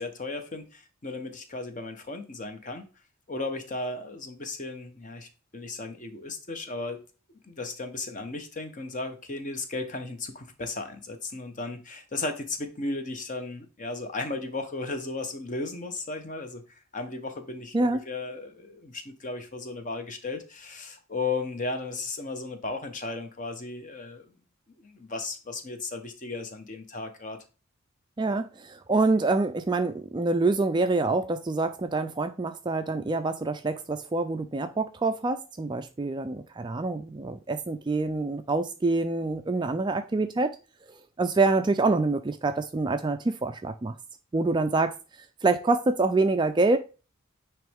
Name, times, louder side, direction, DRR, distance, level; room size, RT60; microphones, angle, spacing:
voice 1, 0.0-2.8 3.3-7.0 7.4-16.6 16.9-24.3 24.8-27.4, left 3 dB, 35° left, 0.8 m, -35 dB
voice 2, 17.7-18.1 28.2-40.6 41.2-43.9 44.3-44.9 45.4-46.8, right 3 dB, 20° right, 0.3 m, -26 dB
9.1 x 3.1 x 3.5 m
head